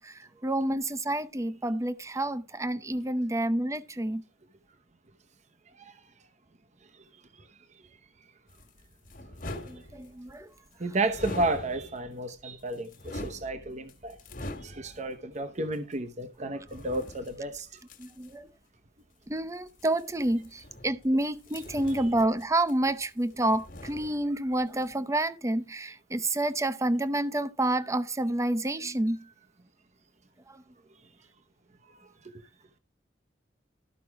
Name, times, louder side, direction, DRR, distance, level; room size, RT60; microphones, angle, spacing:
voice 1, 0.0-4.2 9.7-10.5 18.0-18.5 19.3-29.3 30.5-30.6, right 1 dB, 15° right, 0.7 m, -29 dB
sound 1, 8.5-10.4 11.1-12.2 12.6-15.1 15.7-15.8 16.6-18.3 19.7-21.1 21.4-23.0 23.3-24.5 24.7-24.9, left 1 dB, 50° left, 1.6 m, -43 dB
voice 2, 10.8-14.2 14.6-17.7, right 2 dB, 40° right, 0.9 m, -32 dB
13.5 x 5.9 x 4.8 m
head